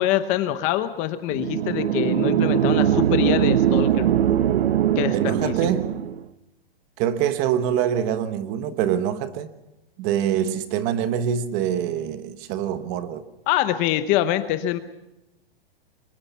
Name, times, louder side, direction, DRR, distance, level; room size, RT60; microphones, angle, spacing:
voice 1, 0.0-4.1 5.0-5.7 13.5-14.8, left 13 dB, 25° left, 0.8 m, -24 dB
sound 1, 1.3-6.2, right 10 dB, 85° right, 1.1 m, -21 dB
voice 2, 5.1-6.0 7.0-9.5 10.0-13.2, right 9 dB, 30° right, 1.2 m, -25 dB
24.5 x 22.0 x 5.7 m
hypercardioid pair, 160°, 29 cm